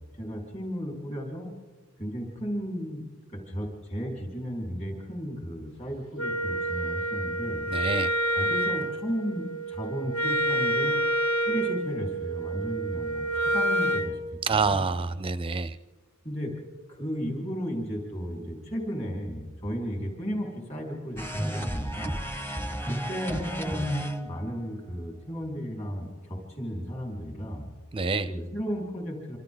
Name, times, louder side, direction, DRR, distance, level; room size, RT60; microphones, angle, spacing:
voice 1, 0.2-1.5 2.0-3.0 3.3-7.6 8.3-11.0 11.4-14.2 14.5-14.8 16.2-16.5 16.9-22.2 23.1-27.7 28.3-29.4, equal, 30° left, -1 dB, 4.9 m, -34 dB
Wind instrument woodwind instrument, 6.2-14.1, right 1 dB, 70° left, 2.3 m, -28 dB
voice 2, 7.7-8.1 14.4-15.8 27.9-28.3, right 4 dB, 25° right, 14 dB, 0.5 m, -27 dB
sound 1, 21.2-24.5, right 1 dB, 10° left, 1.0 m, -32 dB
27.5 x 26.5 x 4.0 m, 1.3 s
head